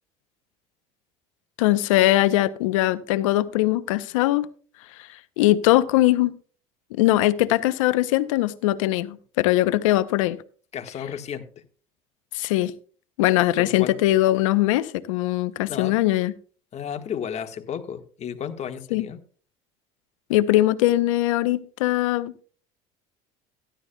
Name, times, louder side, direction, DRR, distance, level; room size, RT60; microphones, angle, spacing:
voice 1, 1.6-4.5 5.4-6.3 6.9-10.4 12.3-12.7 13.2-16.3 18.9-19.0 20.3-22.4, left 16 dB, 85° left, 0.7 m, -21 dB
voice 2, 10.7-11.6 13.6-14.0 15.7-15.9 16.7-19.2, left 8 dB, 45° left, 1.4 m, -33 dB
15.0 x 11.5 x 2.2 m
supercardioid pair, 90°, 16 cm